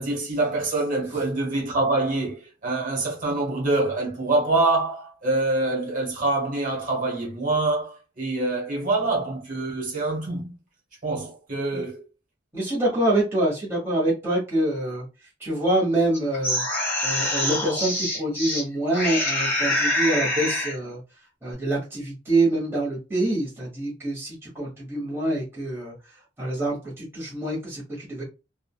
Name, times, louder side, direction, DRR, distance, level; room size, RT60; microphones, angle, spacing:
voice 1, 0.0-10.5 11.0-12.0, right 2 dB, 45° right, 1.4 m, -25 dB
voice 2, 12.5-15.1 15.4-16.6 17.0-21.0 21.4-28.2, right 1 dB, 15° right, 1.3 m, -26 dB
sound 1, 16.1-18.6 18.9-20.8, left 1 dB, 10° left, 1.2 m, -25 dB
3.7 x 2.3 x 2.3 m
head